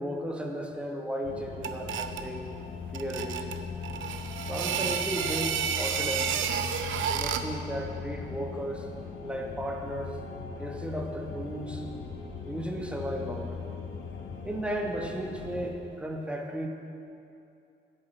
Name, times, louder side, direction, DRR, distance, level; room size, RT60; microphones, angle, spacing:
voice 1, 0.0-2.5 2.9-3.6 4.5-6.4 7.1-8.9 9.2-10.2 10.6-11.8 12.4-13.6 14.4-16.7, equal, 5° right, 1 dB, 1.4 m, -35 dB
sound 1, 1.2-15.7, left 5 dB, 75° left, 1.4 m, -40 dB
sound 2, 1.6-2.3 2.9-7.6, right 8 dB, 75° right, 0.7 m, -31 dB
11.0 x 6.7 x 7.2 m, 2.6 s
cardioid pair, 90°, 20 cm